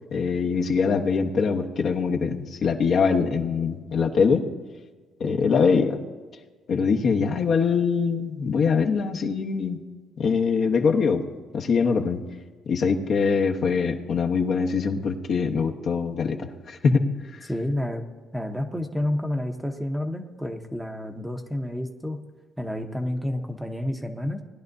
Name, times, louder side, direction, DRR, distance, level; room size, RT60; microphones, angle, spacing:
voice 1, 0.1-4.5 5.2-6.0 6.7-9.8 10.2-11.2 11.5-12.2 12.7-17.5, left 5 dB, 50° left, 2 dB, 1.0 m, -23 dB
voice 2, 17.4-18.1 18.3-22.2 22.6-24.4, left 1 dB, 5° right, 4 dB, 0.9 m, -30 dB
19.0 x 11.0 x 2.7 m, 1.4 s
cardioid pair, 120°, 0 cm